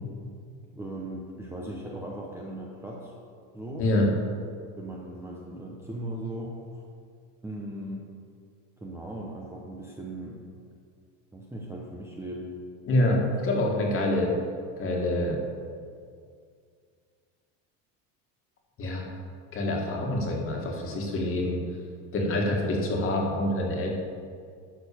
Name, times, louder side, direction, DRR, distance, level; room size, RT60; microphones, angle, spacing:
voice 1, 0.7-3.1 3.5-3.9 4.8-6.6 7.4-8.0 8.8-10.4 11.3-12.6, right 1 dB, 5° right, -3 dB, 0.8 m, -38 dB
voice 2, 3.8-4.1 12.9-14.3 14.8-15.4 18.8-19.1 19.5-21.6 22.1-23.9, left 1 dB, 30° left, 0 dB, 1.9 m, -26 dB
12.0 x 4.3 x 6.8 m, 2.2 s
cardioid pair, 145°, 41 cm